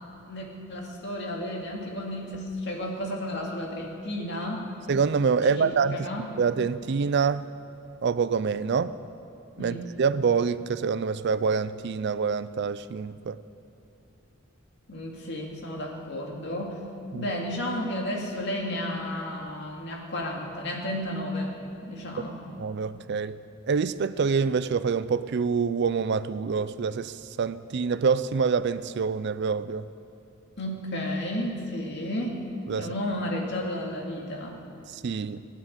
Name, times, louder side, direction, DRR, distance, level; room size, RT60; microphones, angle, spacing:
voice 1, 0.3-4.7 5.4-6.3 9.6-9.9 14.9-16.8 17.1-21.6 21.8-22.4 30.6-32.4 32.7-34.6, left 1 dB, 55° left, 0 dB, 2.4 m, -32 dB
voice 2, 4.9-6.1 6.4-7.4 8.0-8.9 9.6-13.4 17.1-17.3 22.6-23.4 23.6-29.8 32.7-32.9 34.9-35.4, right 5 dB, 55° right, 15 dB, 0.4 m, -26 dB
17.5 x 9.5 x 8.1 m, 2.6 s
head